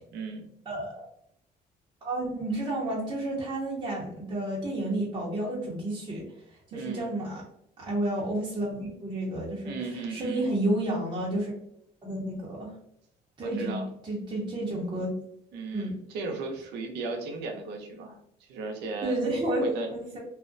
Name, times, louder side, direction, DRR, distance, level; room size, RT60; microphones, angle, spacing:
voice 1, 0.1-0.5 6.7-7.1 9.6-10.5 13.4-13.9 15.5-18.2 18.5-19.3 19.6-19.9, right 3 dB, 90° right, 3 dB, 0.6 m, -35 dB
voice 2, 0.7-1.1 2.0-6.3 6.5-7.4 7.8-11.5 12.0-12.7 13.4-15.1 15.7-15.9 19.0-19.6 19.9-20.2, right 1 dB, 25° right, -4 dB, 0.7 m, -31 dB
2.4 x 2.1 x 2.5 m, 0.74 s
cardioid pair, 110°, 17 cm